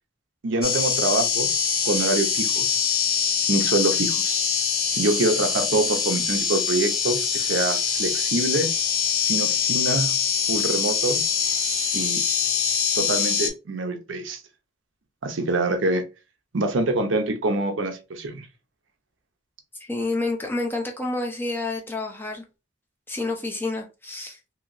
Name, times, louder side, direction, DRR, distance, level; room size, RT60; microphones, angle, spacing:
voice 1, 0.4-2.8 3.5-4.4 5.0-8.7 9.2-10.1 10.5-11.2 11.9-12.2 12.9-14.4 15.2-16.0 16.5-18.5, right 2 dB, 80° right, 0.7 m, -25 dB
sound 1, 0.6-13.5, left 7 dB, 50° left, 0.8 m, -24 dB
voice 2, 19.8-22.4 23.1-24.4, left 2 dB, 10° left, 0.5 m, -29 dB
2.9 x 2.8 x 2.6 m
head